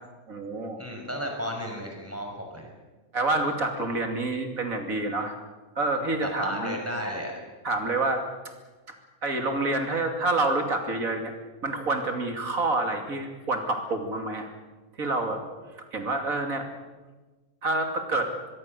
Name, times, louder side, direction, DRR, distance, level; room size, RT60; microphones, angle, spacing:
voice 1, 0.3-1.0 3.1-5.3 5.8-6.8 7.6-8.3 8.9-9.0 9.2-11.3 11.6-14.5 15.0-15.4 15.9-16.7 17.6-18.3, right 2 dB, 70° right, 4 dB, 3.1 m, -27 dB
voice 2, 0.8-2.7 6.2-7.3, equal, 10° right, 1 dB, 5.8 m, -33 dB
24.0 x 22.5 x 6.8 m, 1.2 s
omnidirectional pair, 1.5 m